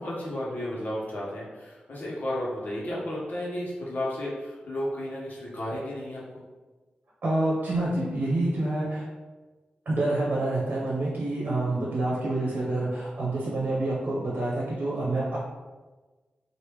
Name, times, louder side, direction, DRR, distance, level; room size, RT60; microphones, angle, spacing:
voice 1, 0.0-6.2, left 1 dB, 60° left, -6 dB, 1.1 m, -33 dB
voice 2, 7.2-9.1 9.9-15.4, right 2 dB, 65° right, -5 dB, 0.8 m, -27 dB
3.4 x 2.6 x 3.1 m, 1.3 s
wide cardioid pair, 125°, 3 cm